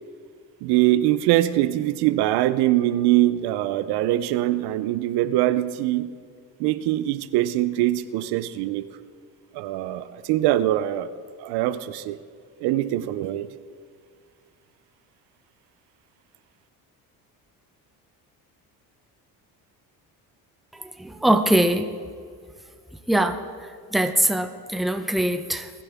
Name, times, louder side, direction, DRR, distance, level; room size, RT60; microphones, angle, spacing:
voice 1, 0.6-6.1 6.6-8.9 9.5-11.1 11.4-12.2 12.6-13.5, right 14 dB, 90° right, 13 dB, 0.7 m, -23 dB
voice 2, 20.7-21.9 23.1-25.7, right 1 dB, ahead, 6 dB, 0.7 m, -23 dB
20.5 x 10.5 x 3.6 m, 2.1 s
cardioid pair, 115°, 38 cm